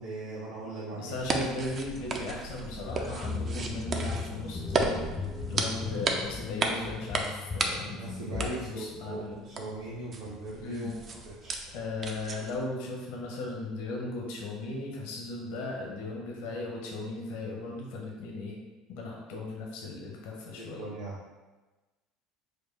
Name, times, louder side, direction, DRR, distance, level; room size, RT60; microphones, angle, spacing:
voice 1, 0.0-1.1 7.8-11.0 11.2-11.6 20.6-21.2, right 2 dB, 75° right, -9 dB, 0.9 m, -39 dB
voice 2, 0.9-5.0 5.5-9.4 10.6-10.9 11.7-18.5 18.9-20.8, left 2 dB, 70° left, -1 dB, 0.7 m, -37 dB
sound 1, 1.1-12.7, right 3 dB, 40° right, 0.5 m, -35 dB
sound 2, 2.9-8.5, left 4 dB, 25° left, 0.4 m, -37 dB
4.3 x 2.2 x 3.2 m, 1.2 s
hypercardioid pair, 75°, 0 cm